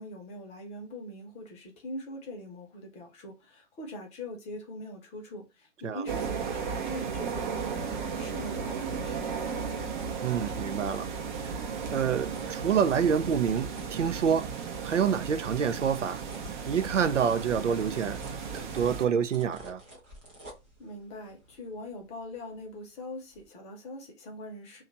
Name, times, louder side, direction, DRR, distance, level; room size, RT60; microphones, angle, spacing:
voice 1, 0.0-9.8 20.8-24.8, left 1 dB, 20° left, 0.8 m, -42 dB
sound 1, 6.1-19.1, right 6 dB, 40° right, 0.8 m, -35 dB
sound 2, 9.0-15.0 15.4-23.0 23.3-23.5, equal, 10° right, 0.3 m, -51 dB
voice 2, 10.2-11.1 11.9-14.5 14.8-16.2 16.7-18.2 18.5-19.8, right 7 dB, 80° right, 0.6 m, -27 dB
3.0 x 2.4 x 3.9 m
figure-of-eight pair, 125°, 36 cm